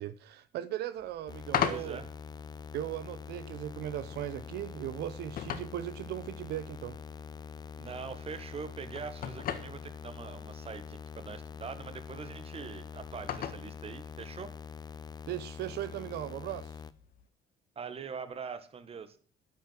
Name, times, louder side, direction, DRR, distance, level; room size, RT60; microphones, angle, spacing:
voice 1, 0.0-2.0 2.7-7.0 15.3-16.7, right 12 dB, 75° right, 0.9 m, -38 dB
sound 1, 1.0-17.3, left 9 dB, 55° left, 1.5 m, -42 dB
sound 2, 1.3-16.9, left 6 dB, 25° left, 0.8 m, -45 dB
voice 2, 1.6-2.1 7.8-14.5 17.7-19.2, right 6 dB, 35° right, 1.6 m, -43 dB
9.4 x 9.4 x 7.5 m
cardioid pair, 110°, 17 cm